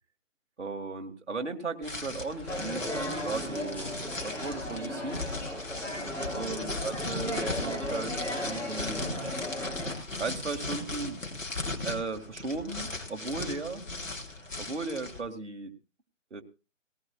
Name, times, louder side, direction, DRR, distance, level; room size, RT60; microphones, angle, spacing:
voice 1, 0.6-5.2 6.3-9.0 9.5-9.6 10.2-11.2 11.8-13.8 14.6-15.7 16.3-16.4, right 3 dB, 60° right, 5 dB, 2.2 m, -36 dB
sound 1, 1.8-15.2, left 2 dB, 75° left, 3.5 m, -37 dB
sound 2, 2.5-9.9, equal, 5° left, 5.1 m, -36 dB
18.5 x 18.0 x 2.4 m, 0.31 s
figure-of-eight pair, 145°, 39 cm